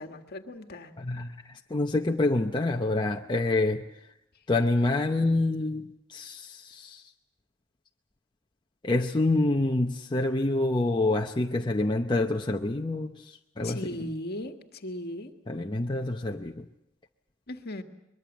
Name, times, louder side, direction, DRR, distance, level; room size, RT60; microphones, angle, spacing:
voice 1, 0.0-0.9 13.6-15.3 17.5-17.8, left 1 dB, 50° left, 6 dB, 1.7 m, -37 dB
voice 2, 1.0-3.8 4.5-5.8 6.1-7.0 8.8-14.1 15.5-16.7, left 2 dB, 20° left, 2 dB, 0.7 m, -27 dB
23.0 x 22.0 x 7.4 m, 0.88 s
head